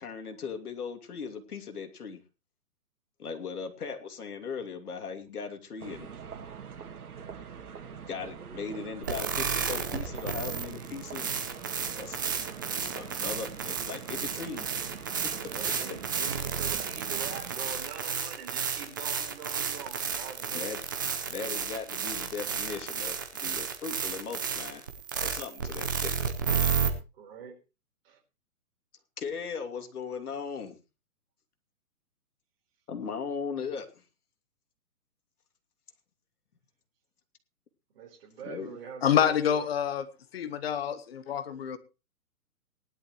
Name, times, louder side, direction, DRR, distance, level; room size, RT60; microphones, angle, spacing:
voice 1, 0.0-2.2 3.2-6.1 8.1-11.3 11.8-12.2 12.7-14.7 15.9-16.0 20.5-20.8 21.3-24.9 25.2-26.3 29.2-30.8 32.9-34.0 38.4-38.8, left 5 dB, 75° left, 2.9 m, -38 dB
sound 1, 5.8-17.6, right 6 dB, 70° right, 2.5 m, -44 dB
sound 2, 9.0-26.9, right 6 dB, 15° right, 0.6 m, -32 dB
voice 2, 15.3-20.7 27.2-27.6 28.0-28.2 37.9-39.6, right 7 dB, 40° right, 4.4 m, -44 dB
voice 3, 39.0-40.1 40.3-41.8, left 9 dB, 40° left, 1.3 m, -27 dB
18.5 x 11.5 x 3.1 m
hypercardioid pair, 160°, 46 cm